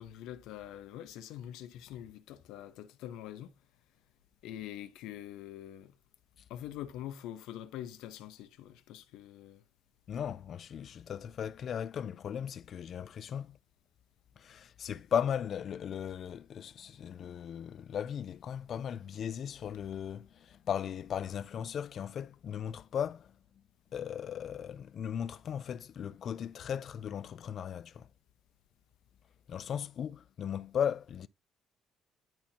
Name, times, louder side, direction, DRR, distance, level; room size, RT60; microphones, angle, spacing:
voice 1, 0.0-3.5 4.4-5.9 6.5-9.6 17.0-17.3, left 11 dB, 85° left, 0.8 m, -45 dB
voice 2, 10.1-13.6 14.4-23.6 23.9-28.1 29.5-31.3, left 8 dB, 45° left, 0.4 m, -37 dB
10.5 x 4.3 x 2.8 m
cardioid pair, 135°, 0 cm